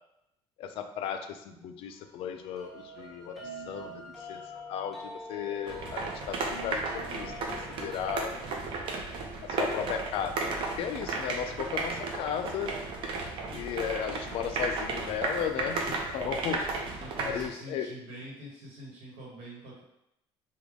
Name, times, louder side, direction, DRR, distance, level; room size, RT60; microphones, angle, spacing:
voice 1, 0.6-4.4 4.7-8.3 9.5-12.7 13.5-16.6 17.2-17.9, left 8 dB, 65° left, 7 dB, 0.4 m, -35 dB
sound 1, 2.0-8.2, left 1 dB, ahead, 0.7 m, -45 dB
sound 2, 5.7-17.5, right 3 dB, 55° right, 0.6 m, -34 dB
voice 2, 16.9-19.8, right 1 dB, 90° right, -4 dB, 1.1 m, -45 dB
3.4 x 2.2 x 3.5 m, 0.84 s
cardioid pair, 150°, 10 cm